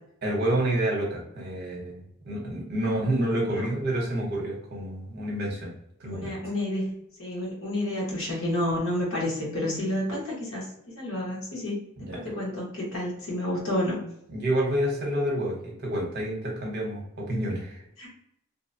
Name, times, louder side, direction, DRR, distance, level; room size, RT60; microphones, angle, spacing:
voice 1, 0.2-5.7 6.0-6.3 12.0-12.2 14.3-17.8, right 1 dB, 50° right, -2 dB, 0.9 m, -28 dB
voice 2, 6.0-11.8 12.1-14.0 18.0-18.1, left 1 dB, 70° left, -4 dB, 1.1 m, -30 dB
2.7 x 2.1 x 2.6 m, 0.74 s
head